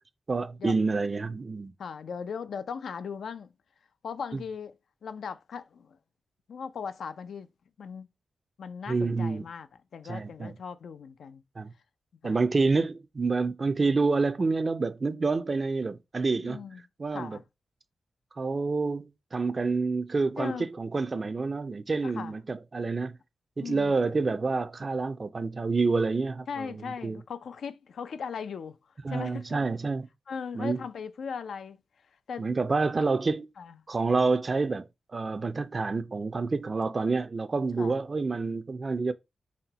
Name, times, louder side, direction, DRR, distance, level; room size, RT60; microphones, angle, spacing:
voice 1, 0.3-1.7 4.3-4.4 8.9-9.5 10.0-10.5 11.6-11.7 12.2-16.6 17.0-17.4 18.4-23.2 23.6-27.2 29.0-30.1 30.5-30.8 32.4-33.5 33.9-34.9 35.1-39.1, right 4 dB, 35° right, 0.4 m, -28 dB
voice 2, 1.8-3.5 4.0-4.7 5.0-6.0 6.5-7.5 7.8-8.1 8.6-9.7 9.9-11.4 12.2-12.4 16.4-16.8 17.1-17.4 20.4-20.7 22.0-22.3 23.6-23.9 26.5-28.8 29.1-29.7 30.3-31.8 32.3-32.5 33.6-33.7 37.8-37.9, left 6 dB, 85° left, 0.4 m, -38 dB
4.1 x 2.1 x 4.0 m
wide cardioid pair, 115°, 0 cm